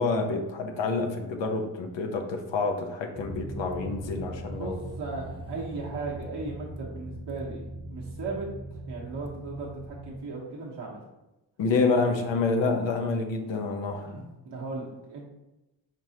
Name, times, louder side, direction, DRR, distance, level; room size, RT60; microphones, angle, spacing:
voice 1, 0.0-4.8 11.6-14.1, left 4 dB, 70° left, 4 dB, 0.8 m, -28 dB
sound 1, 3.2-10.2, right 1 dB, 10° right, 1.0 m, -40 dB
voice 2, 4.5-11.0 11.8-12.2 14.0-15.2, right 3 dB, 60° right, -4 dB, 1.1 m, -37 dB
4.7 x 3.7 x 2.8 m, 1.0 s
supercardioid pair, 55°, 45 cm